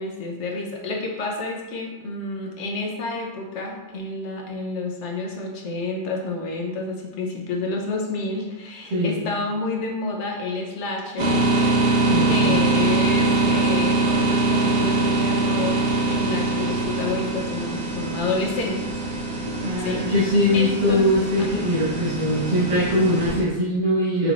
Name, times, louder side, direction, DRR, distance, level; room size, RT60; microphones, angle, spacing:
voice 1, 0.0-11.4 12.2-18.9 19.8-20.0 20.5-21.1 21.4-21.6, left 3 dB, 70° left, 0 dB, 1.0 m, -29 dB
sound 1, 11.2-23.4, right 3 dB, 55° right, 1.1 m, -23 dB
voice 2, 12.0-12.7 19.4-24.3, left 1 dB, 80° right, -10 dB, 1.6 m, -22 dB
4.6 x 3.5 x 2.4 m, 1.1 s
omnidirectional pair, 1.3 m